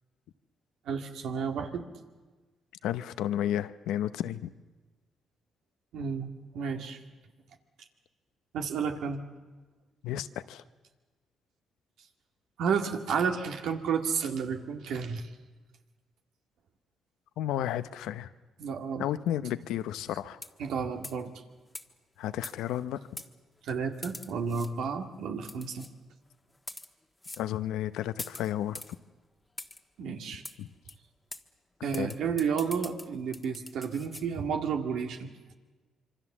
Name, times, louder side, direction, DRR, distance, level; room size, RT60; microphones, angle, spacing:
voice 1, 0.9-1.9 5.9-6.3 6.5-7.0 8.5-9.2 12.6-15.3 18.6-19.1 20.6-21.3 23.6-25.9 30.0-30.4 31.8-35.3, right 6 dB, 80° right, 4 dB, 2.0 m, -31 dB
voice 2, 2.8-4.5 10.0-10.6 17.4-18.3 19.0-20.4 22.2-23.0 27.4-28.8 30.6-30.7 31.9-32.1, left 11 dB, 85° left, 13 dB, 0.7 m, -32 dB
sound 1, 20.3-20.7 21.0-21.3 21.7-21.9 22.4-22.8 23.2-23.3 24.0-24.7 25.5-25.9 26.5-26.9 27.2-27.5 28.2-29.0 29.6-29.8 30.4-30.6 30.9-31.0 31.3-31.4 31.9-34.3, left 2 dB, 15° left, 1.4 m, -43 dB
26.0 x 24.0 x 7.3 m, 1.3 s
cardioid pair, 75°, 0 cm